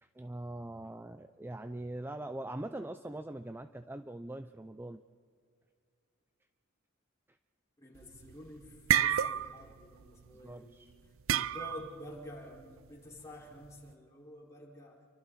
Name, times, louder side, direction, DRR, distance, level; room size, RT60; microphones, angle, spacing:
voice 1, 0.0-5.0 7.3-7.4 10.3-11.0, right 1 dB, 10° right, 10 dB, 0.4 m, -42 dB
voice 2, 7.8-10.9 11.3-15.0, left 1 dB, 15° left, -3 dB, 5.3 m, -49 dB
sound 1, 8.0-8.3 8.6-9.7 10.0-10.3 11.3-12.0, right 10 dB, 70° right, 0.5 m, -29 dB
28.0 x 24.5 x 4.2 m, 2.2 s
head